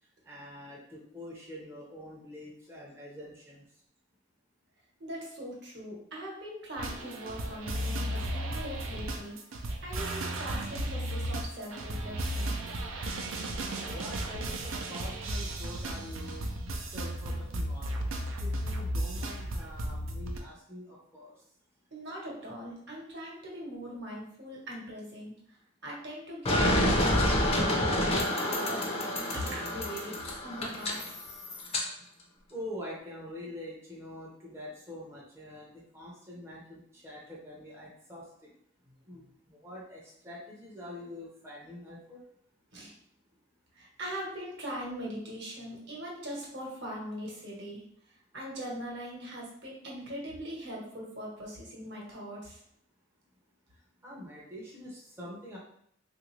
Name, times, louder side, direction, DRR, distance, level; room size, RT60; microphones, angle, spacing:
voice 1, 0.2-3.6 13.8-17.9 18.4-21.3 32.5-38.5 39.1-42.2 53.7-55.6, left 1 dB, 15° right, -5 dB, 0.6 m, -45 dB
voice 2, 5.0-9.4 9.8-12.6 21.9-25.6 25.8-31.2 38.8-38.9 42.7-43.0 43.7-47.8 48.3-52.6, equal, 60° right, -3 dB, 1.0 m, -41 dB
sound 1, 6.8-20.4, right 1 dB, 85° right, 0.5 m, -34 dB
sound 2, 26.5-31.8, left 1 dB, 30° left, 0.5 m, -28 dB
3.3 x 2.5 x 3.1 m, 0.70 s
head